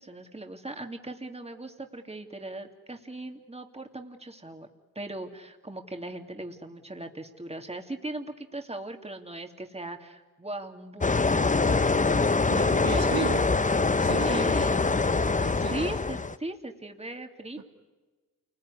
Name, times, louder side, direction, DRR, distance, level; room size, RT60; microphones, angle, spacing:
voice 1, 0.0-4.7 4.9-11.3 12.8-13.2 14.3-15.0 15.7-17.6, right 2 dB, 15° right, 4 dB, 2.7 m, -38 dB
sound 1, 11.0-16.3, left 3 dB, 20° left, 0.8 m, -24 dB
voice 2, 12.5-13.5 14.0-14.5 15.4-15.9 17.6-17.7, right 6 dB, 80° right, 3 dB, 2.3 m, -35 dB
29.0 x 20.5 x 9.8 m, 1.3 s
cardioid pair, 55°, 36 cm